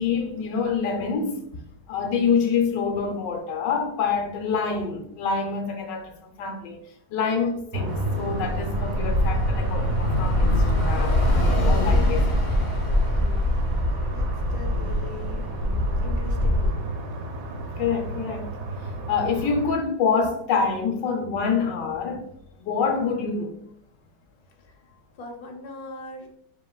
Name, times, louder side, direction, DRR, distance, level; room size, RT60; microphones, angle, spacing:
voice 1, 0.0-6.8 7.1-10.5 10.8-12.3 17.8-18.5 19.1-22.3 22.6-23.5, left 5 dB, 85° left, 1.3 m, -26 dB
sound 1, 7.7-19.8, right 2 dB, 90° right, 1.4 m, -31 dB
Bus / Traffic noise roadway noise, 7.9-16.7, left 1 dB, 35° left, 0.7 m, -23 dB
voice 2, 13.1-13.6 14.0-16.9 24.6-26.3, left 2 dB, 65° left, 1.3 m, -41 dB
5.3 x 3.7 x 2.2 m
omnidirectional pair, 1.9 m